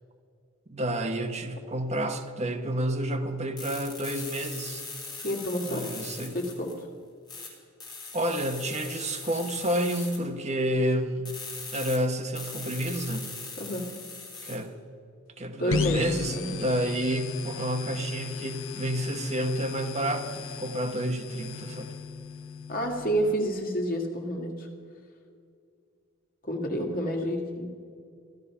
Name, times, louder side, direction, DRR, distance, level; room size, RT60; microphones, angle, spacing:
voice 1, 0.7-4.8 5.7-6.4 8.1-11.3 11.7-13.3 14.4-14.7 15.4-21.9, right 1 dB, 35° right, 6 dB, 1.1 m, -30 dB
sound 1, 3.6-6.8 7.3-7.5 7.8-10.2 11.2-12.0 12.3-14.6, left 4 dB, 20° left, 3.7 m, -40 dB
voice 2, 5.2-5.8 6.3-6.7 13.6-13.9 15.6-16.0 16.3-16.5 22.7-24.7 26.4-27.7, equal, 45° left, 1 dB, 2.1 m, -29 dB
sound 2, 15.7-23.3, left 5 dB, 70° left, 0.8 m, -36 dB
15.0 x 12.5 x 5.6 m, 2.3 s
head